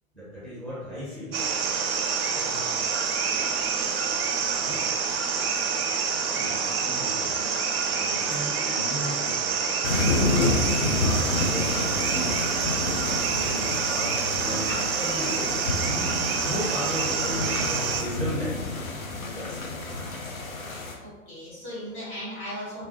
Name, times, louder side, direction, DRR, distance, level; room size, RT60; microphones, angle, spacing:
voice 1, 0.1-1.4 2.2-2.6 4.6-4.9 5.9-7.3 7.8-9.6 10.0-18.9 19.3-19.7, equal, ahead, -9 dB, 1.0 m, -36 dB
sound 1, 1.3-18.0, right 6 dB, 50° right, 0.4 m, -27 dB
sound 2, 9.8-20.9, left 2 dB, 80° left, 0.6 m, -29 dB
voice 2, 21.0-22.9, equal, 30° left, -6 dB, 1.2 m, -37 dB
3.0 x 2.5 x 2.6 m, 1.2 s
figure-of-eight pair, 100°, 41 cm